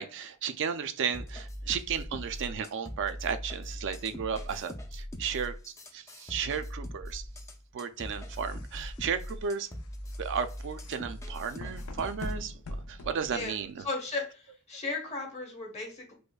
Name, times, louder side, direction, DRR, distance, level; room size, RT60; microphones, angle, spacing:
voice 1, 0.0-5.5 5.9-7.2 7.7-9.7 10.2-12.5 12.9-13.7, right 7 dB, 60° right, 0.4 m, -34 dB
sound 1, 1.1-12.4, equal, 15° left, 0.4 m, -41 dB
sound 2, 8.0-13.9, left 1 dB, 85° left, 0.5 m, -43 dB
voice 2, 13.8-16.1, left 3 dB, 30° left, 1.1 m, -36 dB
5.1 x 2.1 x 2.3 m
head